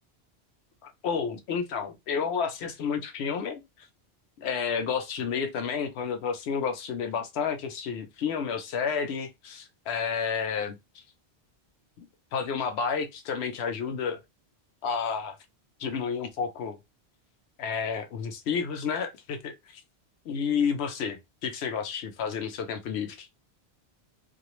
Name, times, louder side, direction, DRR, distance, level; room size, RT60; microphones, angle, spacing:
voice 1, 0.8-3.9 4.4-10.8 12.0-12.1 12.3-14.2 14.8-15.4 15.8-16.8 17.6-19.8 20.3-23.3, left 6 dB, 75° left, 0.9 m, -31 dB
2.4 x 2.2 x 3.0 m
omnidirectional pair, 1.1 m